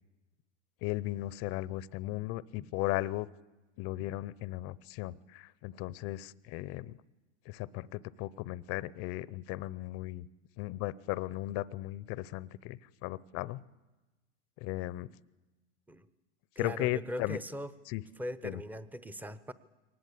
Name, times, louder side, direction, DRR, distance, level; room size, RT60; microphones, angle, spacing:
voice 1, 0.8-3.3 3.8-7.0 7.5-10.3 10.6-13.6 14.6-15.1 16.6-17.4 17.9-18.0 18.4-18.6, left 17 dB, 40° left, 20 dB, 0.7 m, -36 dB
voice 2, 16.6-17.7 18.2-19.5, equal, 5° right, 14 dB, 0.8 m, -40 dB
23.0 x 19.5 x 8.4 m, 1.1 s
supercardioid pair, 125°, 35 cm